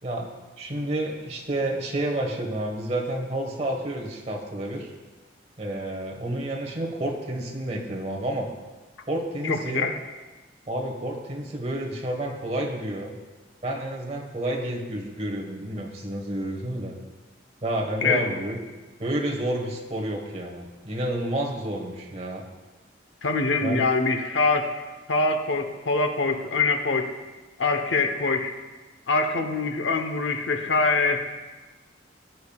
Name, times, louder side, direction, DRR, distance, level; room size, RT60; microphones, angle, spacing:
voice 1, 0.6-4.9 5.6-8.5 9.1-9.9 10.7-13.2 13.6-16.9 17.6-18.6 19.0-22.4 23.6-23.8, right 1 dB, 35° right, 0 dB, 1.4 m, -30 dB
voice 2, 9.4-10.0 18.0-18.3 23.2-24.8 25.1-27.1 27.6-28.5 29.1-31.2, left 3 dB, 85° left, 6 dB, 1.0 m, -24 dB
15.5 x 10.5 x 2.4 m, 1.2 s
head